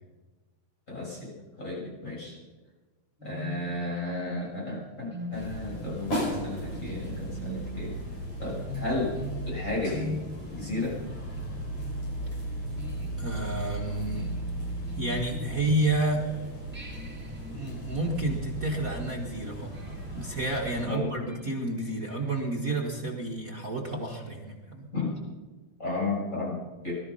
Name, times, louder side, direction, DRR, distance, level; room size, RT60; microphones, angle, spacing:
voice 1, 0.9-2.4 3.2-7.9 8.4-9.1 9.5-10.1 10.5-11.0 20.8-21.4 24.9-25.1 25.8-27.0, left 2 dB, 20° left, -5 dB, 7.1 m, -33 dB
sound 1, 3.2-16.3 16.7-22.6, equal, 5° right, 1.1 m, -43 dB
sound 2, 5.3-20.9, right 1 dB, 35° left, 6.5 m, -36 dB
voice 2, 13.2-14.3 15.0-16.2 17.5-19.7 20.1-24.9, right 2 dB, 65° right, -1 dB, 0.8 m, -30 dB
20.0 x 12.5 x 5.6 m, 1.3 s
omnidirectional pair, 4.4 m